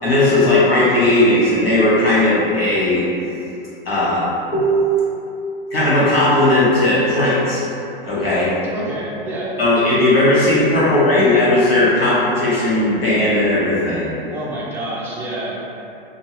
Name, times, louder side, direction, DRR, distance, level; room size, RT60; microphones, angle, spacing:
voice 1, 0.0-3.0 3.9-4.3 4.5-5.2 5.7-7.6 8.0-8.5 9.6-14.1, left 1 dB, 90° left, -8 dB, 1.0 m, -16 dB
voice 2, 8.7-9.5 10.8-11.3 14.3-15.6, right 1 dB, 10° right, -6 dB, 0.4 m, -28 dB
2.6 x 2.2 x 2.8 m, 2.8 s
hypercardioid pair, 105°, 29 cm